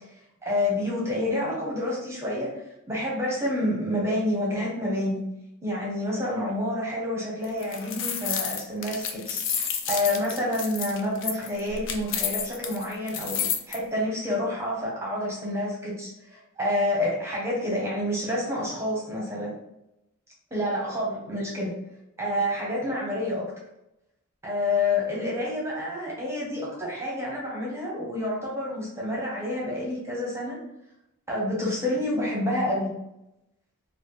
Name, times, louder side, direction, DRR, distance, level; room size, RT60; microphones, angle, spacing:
voice 1, 0.4-5.2 5.6-13.4 13.7-19.5 20.5-21.7 22.2-23.4 24.4-30.6 31.3-32.9, left 1 dB, 15° right, -4 dB, 1.0 m, -28 dB
sound 1, 7.4-13.8, left 7 dB, 60° left, 0.5 m, -30 dB
4.3 x 2.4 x 3.1 m, 0.86 s
head